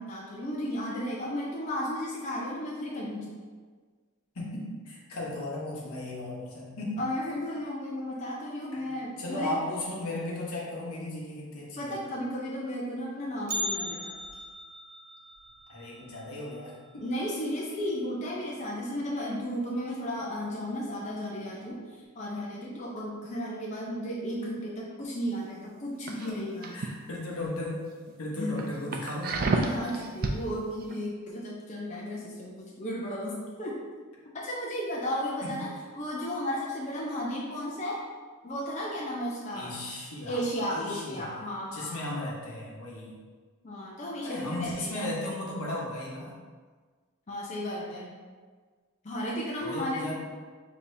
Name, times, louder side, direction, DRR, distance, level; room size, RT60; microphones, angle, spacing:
voice 1, 0.0-3.3 7.0-9.6 11.8-14.1 17.0-21.8 22.2-26.7 28.4-28.6 29.5-33.8 34.3-35.7 35.9-38.0 38.4-39.7 40.3-42.3 43.6-45.1 47.3-48.1 49.0-50.1, equal, 30° left, -4 dB, 0.5 m, -34 dB
voice 2, 4.3-7.0 8.7-8.8 9.2-12.0 15.7-17.0 26.3-26.4 26.7-27.8 28.2-29.4 35.4-35.6 39.5-40.4 40.7-41.4 41.7-43.2 44.2-46.4 49.6-50.1, left 1 dB, 85° left, -4 dB, 1.0 m, -36 dB
Bell, 13.5-17.6 17.9-18.0 18.4-18.5 19.3-19.4 20.2-20.5 20.8-20.9, left 1 dB, 80° right, 0.7 m, -38 dB
sound 1, 26.0-26.9 27.3-27.6 28.1-28.2 28.6-30.4 30.8-31.0, right 3 dB, 40° right, 0.3 m, -30 dB
6.5 x 2.8 x 2.6 m, 1.5 s
head